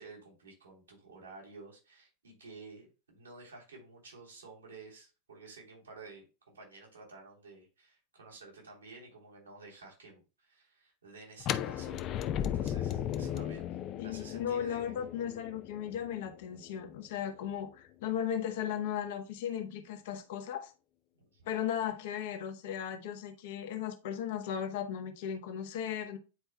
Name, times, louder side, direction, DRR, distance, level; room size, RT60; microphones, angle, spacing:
voice 1, 0.0-13.7 14.0-14.9 21.2-21.5, right 3 dB, 75° right, 3.1 m, -52 dB
sound 1, 11.4-17.3, left 10 dB, 35° left, 0.5 m, -36 dB
voice 2, 14.0-20.7 21.5-26.2, left 9 dB, 50° left, 1.0 m, -36 dB
9.5 x 4.4 x 2.2 m
figure-of-eight pair, 90°, 0 cm